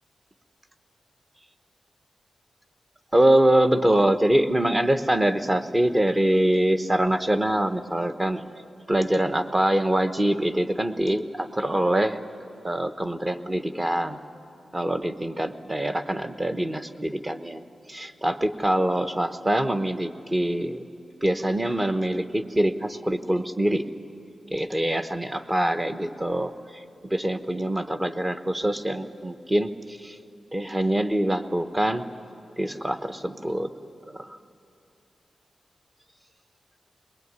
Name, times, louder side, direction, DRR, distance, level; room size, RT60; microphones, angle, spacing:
voice 1, 3.1-8.4 8.9-12.2 12.6-14.2 14.7-20.8 21.2-23.8 24.5-26.5 27.0-30.2 30.5-32.1 32.6-33.7 34.1-34.4, right 1 dB, 15° right, 10 dB, 0.9 m, -24 dB
21.0 x 21.0 x 9.5 m, 2.6 s
wide cardioid pair, 155°, 0 cm